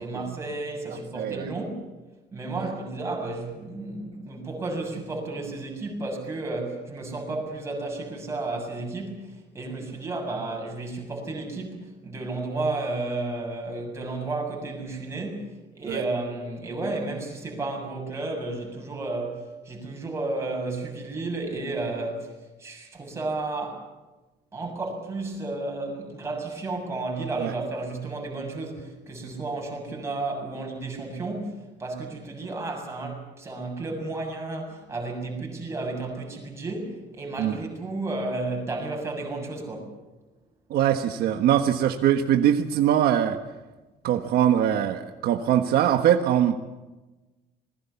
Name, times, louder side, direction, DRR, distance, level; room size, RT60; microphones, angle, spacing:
voice 1, 0.0-1.9 2.3-22.3 22.6-23.9 24.5-39.9, right 2 dB, 15° right, 0 dB, 7.1 m, -32 dB
voice 2, 1.2-1.5 2.6-2.7 15.9-16.0 27.4-27.5 37.4-37.6 40.7-43.4 44.0-46.6, right 10 dB, 70° right, 6 dB, 1.4 m, -22 dB
26.5 x 21.0 x 7.1 m, 1.1 s
cardioid pair, 170°, 17 cm